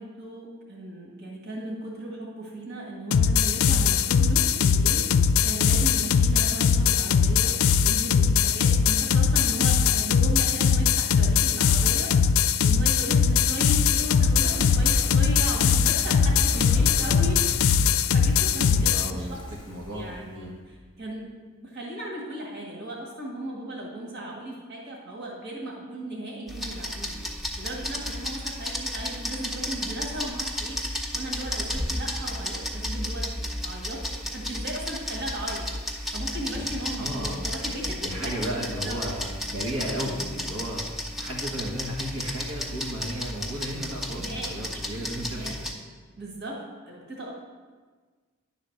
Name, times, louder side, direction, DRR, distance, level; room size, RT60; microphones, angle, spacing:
voice 1, 0.0-5.1 5.4-17.4 17.6-19.4 19.9-27.2 27.6-30.8 31.1-35.7 36.1-39.1 44.1-44.6 45.3-45.7 46.2-47.3, right 1 dB, 55° right, -2 dB, 1.9 m, -36 dB
sound 1, 3.1-19.1, left 6 dB, 80° left, 0.4 m, -21 dB
Fire, 13.2-20.5 20.8-20.9, left 1 dB, 20° left, 1.0 m, -34 dB
voice 2, 18.9-20.5 37.0-37.4 38.0-40.8 41.2-45.7, equal, 85° right, -3 dB, 1.7 m, -34 dB
sound 2, 26.5-45.7, left 1 dB, ahead, 0.7 m, -33 dB
10.5 x 4.0 x 6.6 m, 1.4 s
head